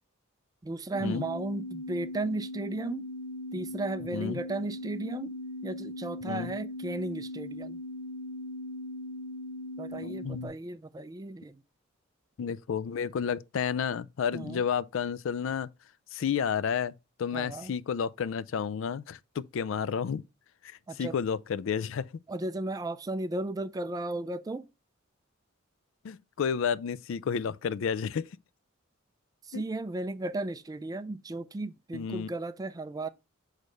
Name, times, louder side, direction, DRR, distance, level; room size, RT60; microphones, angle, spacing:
voice 1, 0.6-3.0 3.5-5.3 5.6-7.8 9.8-11.6 14.3-14.6 17.3-17.7 20.9-21.1 22.3-24.7 29.5-33.1, right 2 dB, 20° right, 0.3 m, -35 dB
sound 1, 0.9-10.5, left 1 dB, 45° left, 0.9 m, -39 dB
voice 2, 10.0-10.5 12.4-15.7 16.1-16.9 17.2-20.2 21.0-22.1 26.0-28.3 29.5-29.6 31.9-32.3, left 7 dB, 65° left, 0.4 m, -31 dB
6.4 x 3.2 x 5.1 m
head